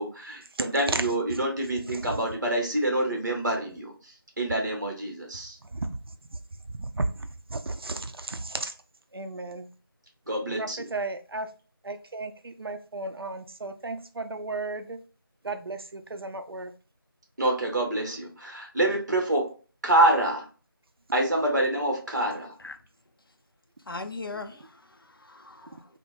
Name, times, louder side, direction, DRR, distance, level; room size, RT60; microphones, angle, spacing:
voice 1, 0.0-3.9 4.4-5.6 10.3-10.9 17.4-19.5 19.8-20.4 21.1-22.5, right 1 dB, 50° right, 1.1 m, -26 dB
voice 2, 0.6-1.1 1.3-1.4 1.9-2.2 5.7-5.9 6.7-8.7 9.1-9.7 10.6-11.5 11.8-15.0 15.4-16.7, right 2 dB, 80° right, 0.4 m, -34 dB
voice 3, 23.9-25.9, left 3 dB, 65° left, 0.5 m, -39 dB
3.3 x 2.1 x 3.1 m
figure-of-eight pair, 175°, 12 cm